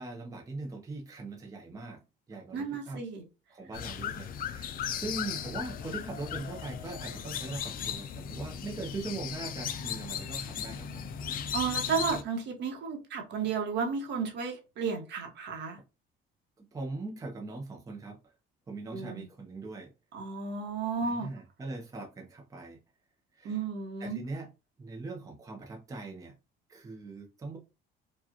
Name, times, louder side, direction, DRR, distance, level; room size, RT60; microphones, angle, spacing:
voice 1, 0.0-2.0 2.3-3.0 3.5-11.0 16.6-18.3 18.7-19.9 21.0-22.8 23.3-23.6 24.0-24.5 24.8-26.3 26.7-27.6, right 3 dB, 15° right, 0.6 m, -41 dB
voice 2, 2.5-3.2 11.5-15.8 18.9-19.3 20.1-21.3 23.4-24.2, right 5 dB, 60° right, 1.1 m, -33 dB
sound 1, 3.7-12.2, left 8 dB, 45° left, 0.4 m, -37 dB
4.9 x 2.4 x 2.7 m
cardioid pair, 155°, 21 cm